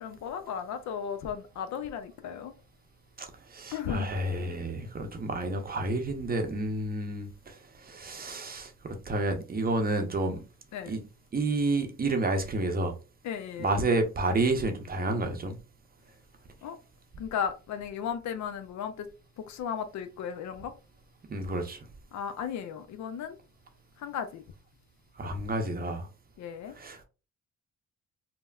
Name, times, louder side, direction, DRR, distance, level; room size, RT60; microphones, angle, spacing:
voice 1, 0.0-2.5 3.7-4.1 10.7-10.9 13.2-13.7 16.6-16.8 17.2-19.1 19.4-20.7 22.1-23.4 24.0-24.4 26.4-26.7, left 8 dB, 65° left, 0.5 m, -35 dB
voice 2, 3.2-10.4 10.9-11.0 11.3-12.9 13.6-15.6 21.3-21.9 25.2-26.1 26.7-27.0, right 2 dB, 30° right, 0.6 m, -30 dB
3.3 x 2.1 x 2.3 m
cardioid pair, 90°, 30 cm